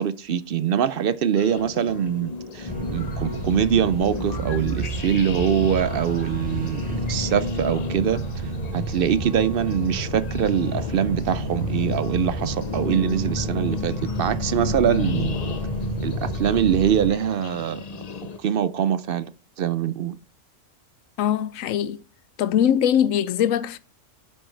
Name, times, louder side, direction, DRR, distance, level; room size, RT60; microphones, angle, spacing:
voice 1, 0.0-8.2 8.7-15.4 16.0-17.8 18.4-19.3 19.6-20.2, right 8 dB, 60° right, 0.6 m, -23 dB
sound 1, 1.4-18.4, left 6 dB, 45° left, 0.6 m, -33 dB
sound 2, 2.6-17.1, right 2 dB, 5° right, 3.8 m, -31 dB
voice 2, 21.2-22.0 22.4-23.8, left 9 dB, 90° left, 1.0 m, -21 dB
9.8 x 7.7 x 3.3 m
omnidirectional pair, 1.3 m